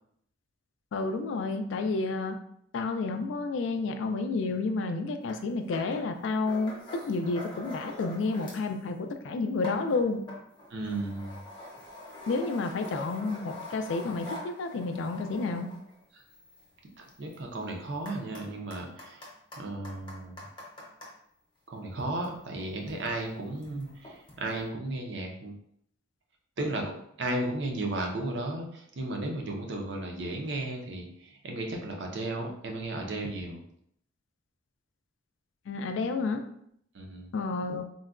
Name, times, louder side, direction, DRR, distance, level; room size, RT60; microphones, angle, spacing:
voice 1, 0.9-2.4 2.7-10.2 12.3-15.7 35.7-36.4 37.3-37.8, left 3 dB, 65° left, 6 dB, 0.3 m, -30 dB
sound 1, 5.3-5.4 5.7-8.7 9.1-21.1 21.9-24.7, left 1 dB, 20° left, 0.7 m, -45 dB
voice 2, 10.7-11.4 17.2-19.2 19.6-20.4 21.7-25.5 26.6-31.1 31.4-33.6 36.9-37.3, right 2 dB, 55° right, 1 dB, 0.5 m, -34 dB
3.7 x 2.2 x 2.4 m, 0.69 s
head